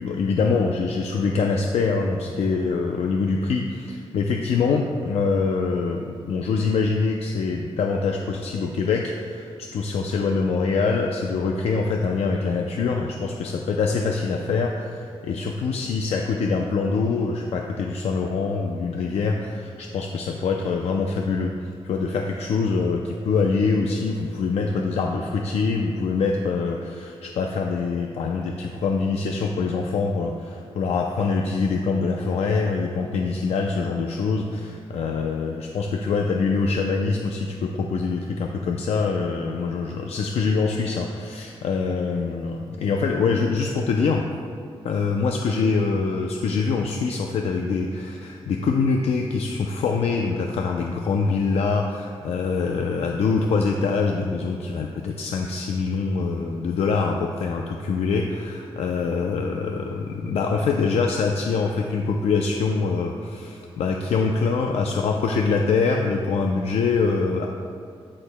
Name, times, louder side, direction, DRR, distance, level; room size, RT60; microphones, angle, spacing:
voice 1, 0.0-21.5 21.8-44.3 44.8-67.5, left 4 dB, 90° left, 2 dB, 0.5 m, -24 dB
15.0 x 6.5 x 2.2 m, 2.4 s
wide cardioid pair, 140°, 10 cm